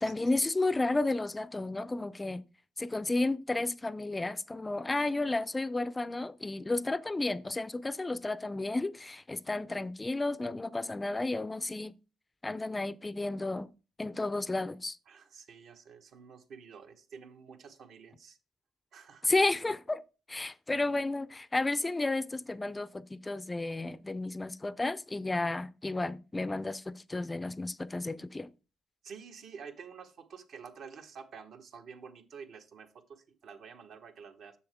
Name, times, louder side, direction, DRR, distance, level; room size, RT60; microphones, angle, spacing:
voice 1, 0.0-2.4 2.8-11.9 12.4-13.7 14.0-15.0 19.2-20.0 20.3-28.5, left 2 dB, 20° left, 0.4 m, -32 dB
voice 2, 15.1-18.4 18.9-19.3 29.0-34.5, right 6 dB, 65° right, 1.2 m, -49 dB
7.0 x 6.7 x 3.4 m
cardioid pair, 90°, 0 cm